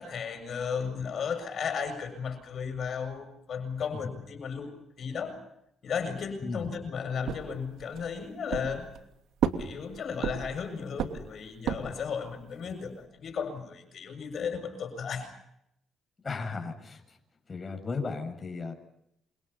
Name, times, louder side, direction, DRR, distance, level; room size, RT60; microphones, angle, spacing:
voice 1, 0.0-5.4 5.8-8.9 9.6-15.3, left 6 dB, 55° left, 7 dB, 7.4 m, -35 dB
sound 1, 7.3-8.1 8.5-9.1 9.4-10.6 11.0-12.1, right 9 dB, 80° right, 2.8 m, -32 dB
voice 2, 16.2-17.2 17.5-18.7, left 4 dB, 30° left, 3 dB, 6.9 m, -35 dB
29.5 x 27.5 x 5.7 m, 0.78 s
cardioid pair, 90°, 0 cm